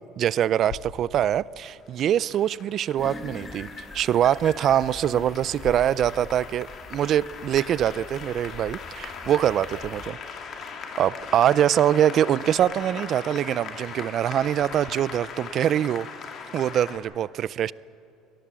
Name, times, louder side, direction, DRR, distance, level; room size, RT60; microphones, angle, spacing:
voice 1, 0.2-3.7 3.9-10.2 11.0-16.1 16.5-17.7, right 10 dB, 45° right, 0.4 m, -23 dB
sound 1, 0.7-14.9, left 6 dB, 75° left, 2.4 m, -50 dB
Applause, 1.7-17.0, left 5 dB, 40° left, 2.5 m, -40 dB
sound 2, 3.0-10.1, left 3 dB, 20° left, 1.3 m, -43 dB
24.5 x 18.5 x 7.5 m
cardioid pair, 145°, 0 cm